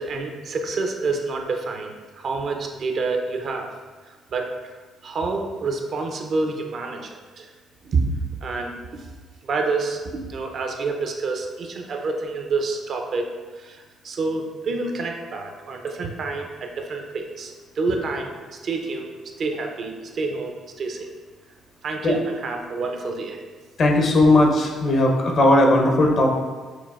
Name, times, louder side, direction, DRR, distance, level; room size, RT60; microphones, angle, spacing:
voice 1, 0.0-3.7 4.3-4.7 5.0-7.5 7.8-8.1 8.4-9.0 9.4-13.3 13.6-18.3 18.6-21.1 21.8-23.4, right 3 dB, 60° right, 3 dB, 0.5 m, -28 dB
voice 2, 23.8-26.3, left 1 dB, 55° left, 1 dB, 0.7 m, -17 dB
5.7 x 2.2 x 2.4 m, 1.4 s
supercardioid pair, 65°, 0 cm